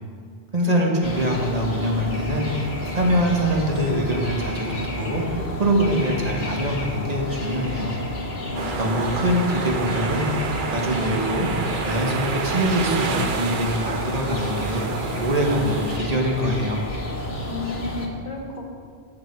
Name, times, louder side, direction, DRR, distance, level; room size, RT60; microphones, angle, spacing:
voice 1, 0.5-2.7 2.9-7.9 8.8-16.8, equal, 40° right, 0 dB, 1.5 m, -24 dB
sound 1, 1.0-18.1, left 1 dB, 80° left, 1.5 m, -31 dB
voice 2, 8.5-9.1 17.5-18.6, left 3 dB, 50° left, 0 dB, 1.5 m, -34 dB
sound 2, 8.6-16.0, right 5 dB, 60° right, 0.8 m, -29 dB
10.5 x 7.8 x 4.6 m, 2.1 s
omnidirectional pair, 1.0 m